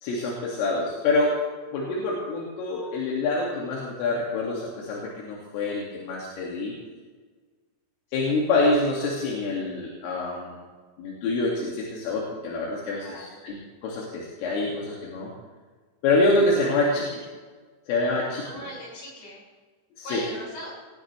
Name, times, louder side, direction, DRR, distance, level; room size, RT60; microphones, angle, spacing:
voice 1, 0.0-1.4 1.7-6.7 8.1-10.6 11.0-15.3 16.0-17.2 17.9-18.5 20.0-20.2, left 2 dB, 80° left, -3 dB, 5.0 m, -26 dB
voice 2, 13.0-13.4 18.4-19.4 20.0-20.7, left 1 dB, 60° left, -4 dB, 9.0 m, -39 dB
20.5 x 18.5 x 3.4 m, 1.4 s
omnidirectional pair, 5.7 m